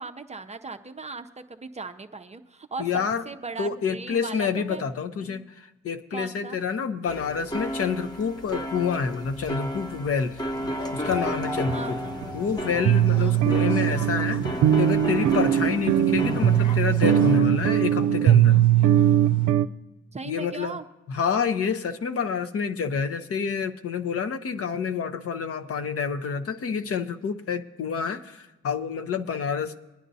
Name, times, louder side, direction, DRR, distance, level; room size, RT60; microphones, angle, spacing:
voice 1, 0.0-4.8 5.2-5.4 6.1-6.6 11.7-11.9 13.2-13.4 20.1-20.8, right 4 dB, 20° right, 7 dB, 0.6 m, -38 dB
voice 2, 2.8-3.2 3.6-10.4 10.9-12.0 12.3-14.4 14.8-18.6 20.3-20.8 21.1-29.8, left 6 dB, 50° left, 9 dB, 0.7 m, -28 dB
sound 1, 7.1-17.4, equal, 15° left, 0.9 m, -34 dB
sound 2, 10.5-19.5, left 3 dB, 75° left, 1.2 m, -36 dB
sound 3, 11.1-11.2 11.7-11.8 12.2-12.3 12.8-19.6, right 11 dB, 75° right, 0.5 m, -20 dB
21.0 x 9.9 x 2.7 m, 1.1 s
cardioid pair, 90°, 30 cm